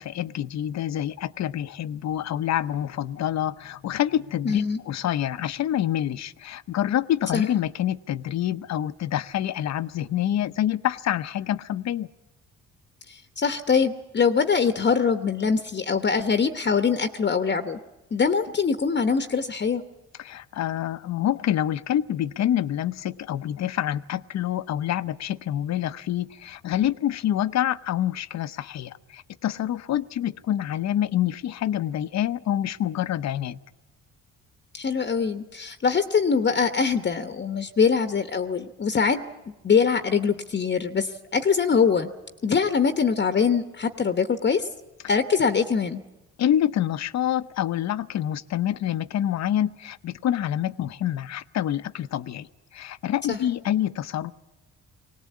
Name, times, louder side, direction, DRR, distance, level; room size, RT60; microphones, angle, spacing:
voice 1, 0.0-12.1 20.2-33.6 46.4-52.5 52.7-54.3, left 11 dB, 60° left, 15 dB, 0.7 m, -27 dB
voice 2, 4.4-4.8 7.3-7.4 13.1-17.8 18.1-19.8 34.7-42.1 42.4-44.7 45.1-46.0 53.3-53.4, left 5 dB, 35° left, 9 dB, 1.0 m, -23 dB
21.0 x 18.5 x 8.4 m, 1.1 s
cardioid pair, 90°, 30 cm